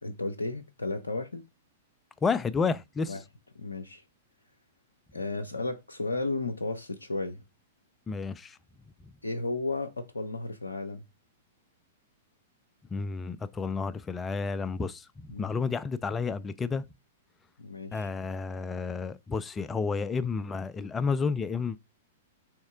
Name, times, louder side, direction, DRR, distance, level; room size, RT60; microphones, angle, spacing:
voice 1, 0.0-1.5 3.1-3.2 3.6-4.0 5.1-7.4 9.2-11.0 15.3-15.5 17.6-18.1, left 2 dB, 75° left, 0.5 m, -34 dB
voice 2, 2.2-3.1 8.1-8.6 12.9-16.8 17.9-21.8, left 5 dB, 15° left, 0.3 m, -31 dB
3.5 x 3.1 x 4.8 m
figure-of-eight pair, 105°, 0 cm